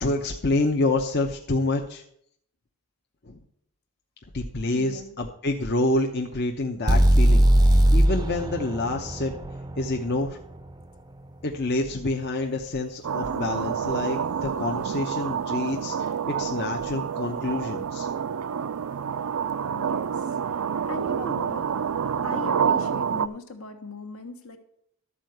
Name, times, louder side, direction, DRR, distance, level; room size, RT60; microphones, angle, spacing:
voice 1, 0.0-2.0 3.2-3.4 4.3-9.3 9.8-10.4 11.4-16.1 16.4-18.1, left 2 dB, 45° left, 1 dB, 0.8 m, -27 dB
voice 2, 4.7-5.2 19.7-20.4 20.9-21.7 22.2-24.6, left 3 dB, 70° left, 6 dB, 1.4 m, -39 dB
sound 1, 6.9-10.8, right 1 dB, 20° right, 0.5 m, -20 dB
sound 2, 13.0-23.3, right 7 dB, 70° right, 0.4 m, -28 dB
12.5 x 4.7 x 7.8 m, 0.70 s
head